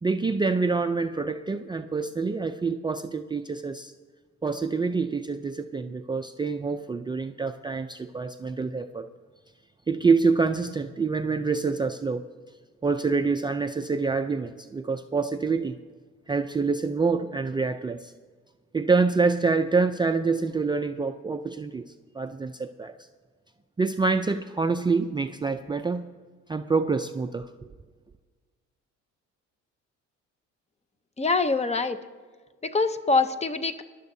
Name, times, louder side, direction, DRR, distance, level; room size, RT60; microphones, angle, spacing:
voice 1, 0.0-3.9 4.4-9.1 9.9-12.3 12.8-15.7 16.3-18.1 18.7-21.8 22.1-22.9 23.8-26.1 26.5-27.5, right 4 dB, 15° right, 7 dB, 0.4 m, -26 dB
voice 2, 31.2-32.0 32.6-33.8, left 3 dB, 20° left, 11 dB, 0.7 m, -24 dB
21.5 x 11.5 x 2.7 m, 1.5 s
cardioid pair, 110°, 29 cm